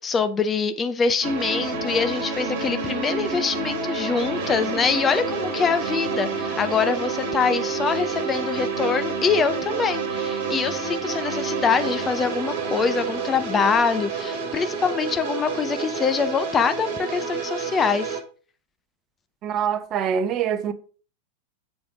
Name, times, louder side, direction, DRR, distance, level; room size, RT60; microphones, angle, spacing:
voice 1, 0.0-18.2, left 5 dB, 20° left, 0.6 m, -24 dB
sound 1, 1.2-18.2, right 4 dB, 50° right, 1.5 m, -29 dB
voice 2, 19.4-20.7, right 8 dB, 35° right, 0.7 m, -24 dB
7.2 x 5.2 x 3.6 m
figure-of-eight pair, 90°, 0 cm